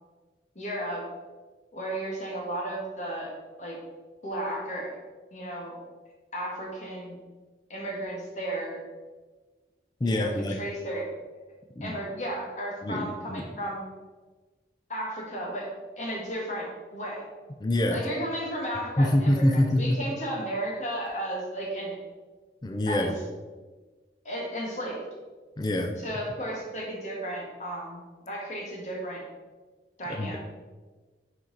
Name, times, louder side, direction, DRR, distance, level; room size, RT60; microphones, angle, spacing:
voice 1, 0.5-1.1 1.7-3.8 4.2-5.0 5.3-5.8 6.3-7.1 7.7-8.8 10.0-11.1 11.8-13.8 14.9-17.3 17.9-22.0 22.9-23.1 24.2-25.0 26.0-29.2 30.0-30.4, right 1 dB, 40° left, -2 dB, 1.5 m, -34 dB
voice 2, 10.0-10.6 11.8-12.0 12.8-13.4 17.6-18.1 19.0-20.0 22.6-23.2 25.6-25.9 30.1-30.4, left 1 dB, 25° left, 4 dB, 0.4 m, -25 dB
6.4 x 4.5 x 4.0 m, 1.3 s
head